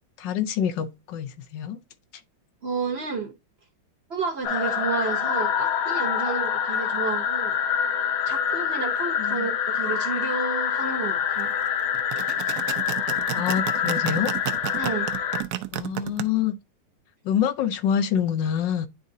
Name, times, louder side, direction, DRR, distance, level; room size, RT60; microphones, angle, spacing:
voice 1, 0.2-1.8 9.2-9.5 13.3-14.3 15.7-16.6 17.2-18.9, left 8 dB, 70° left, 1.3 m, -26 dB
voice 2, 2.6-3.3 4.1-7.6 8.3-11.5 14.7-15.1, right 4 dB, 50° right, 0.7 m, -31 dB
sound 1, 4.4-15.4, left 8 dB, 90° left, 1.9 m, -26 dB
sound 2, 11.9-16.2, right 13 dB, 80° right, 0.8 m, -31 dB
10.5 x 3.6 x 2.7 m
omnidirectional pair, 2.2 m